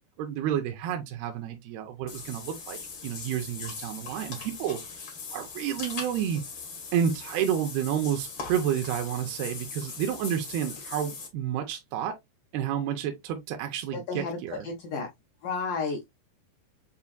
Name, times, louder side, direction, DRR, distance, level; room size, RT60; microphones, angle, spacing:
voice 1, 0.2-4.8 5.3-6.4 6.9-12.1 12.5-14.7, right 9 dB, 80° right, 2.5 m, -30 dB
Water / Bathtub (filling or washing), 2.1-11.3, left 5 dB, 70° left, 1.1 m, -40 dB
voice 2, 13.9-14.4 14.6-15.1 15.4-16.0, left 4 dB, 90° left, 1.8 m, -32 dB
6.9 x 2.6 x 2.4 m
omnidirectional pair, 4.9 m